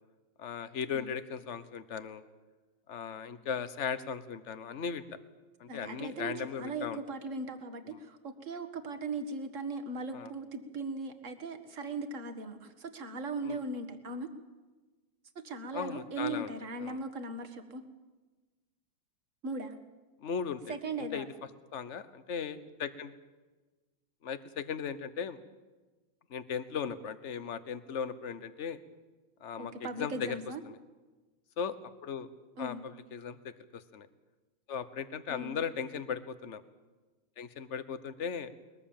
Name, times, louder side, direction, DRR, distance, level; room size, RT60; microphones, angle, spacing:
voice 1, 0.4-2.2 2.9-5.2 5.6-7.0 7.9-8.0 10.1-10.3 13.4-13.6 15.7-16.5 16.8-17.0 20.2-20.7 21.0-21.3 21.7-23.1 24.2-25.4 26.3-28.8 29.4-30.4 30.6-30.8 31.6-31.8 32.0-32.3 32.6-33.4 33.7-34.1 34.7-36.6 37.4-38.5, left 7 dB, 40° left, 13 dB, 1.2 m, -37 dB
voice 2, 5.7-14.3 15.4-17.8 19.4-19.8 20.7-21.2 29.6-30.6 32.6-32.8 35.3-35.6, right 3 dB, 40° right, 8 dB, 2.0 m, -38 dB
22.0 x 21.0 x 7.3 m, 1.2 s
omnidirectional pair, 2.2 m